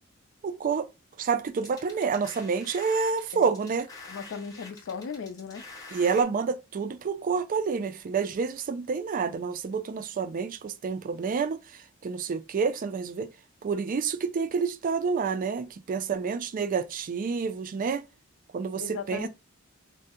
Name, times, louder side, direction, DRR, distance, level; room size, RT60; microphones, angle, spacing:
voice 1, 0.4-0.9 1.2-3.9 5.9-11.6 12.0-13.3 13.6-18.0 18.5-19.3, right 5 dB, 40° right, 0.3 m, -28 dB
sound 1, 1.6-6.2, left 3 dB, 15° left, 0.7 m, -46 dB
voice 2, 4.1-5.6 18.8-19.3, left 6 dB, 65° left, 0.4 m, -37 dB
2.6 x 2.1 x 3.6 m
head